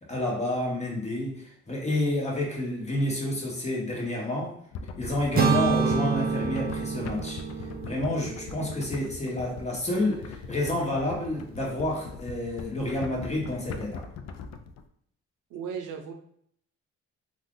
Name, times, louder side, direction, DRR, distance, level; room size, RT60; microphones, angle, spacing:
voice 1, 0.1-4.5 5.0-7.4 7.8-14.0, left 1 dB, 20° left, -2 dB, 1.1 m, -29 dB
sound 1, 4.7-14.8, left 5 dB, 60° left, 0.4 m, -41 dB
sound 2, 5.4-9.4, right 6 dB, 30° right, 0.5 m, -28 dB
voice 2, 15.5-16.1, right 7 dB, 85° right, 3 dB, 0.6 m, -35 dB
2.5 x 2.4 x 3.7 m, 0.67 s
cardioid pair, 90°, 30 cm